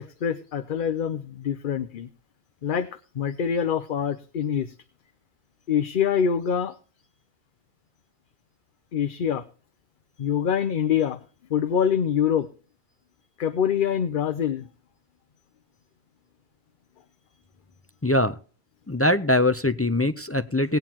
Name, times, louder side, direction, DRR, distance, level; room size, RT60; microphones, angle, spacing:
voice 1, 0.0-2.1 2.6-4.7 5.7-6.8 8.9-9.4 10.2-11.2 11.5-12.5 13.4-14.7, left 8 dB, 60° left, 10 dB, 0.8 m, -25 dB
voice 2, 18.0-18.4 18.9-20.8, left 1 dB, 20° left, 11 dB, 0.4 m, -22 dB
18.5 x 9.1 x 2.9 m, 0.39 s
omnidirectional pair, 1.1 m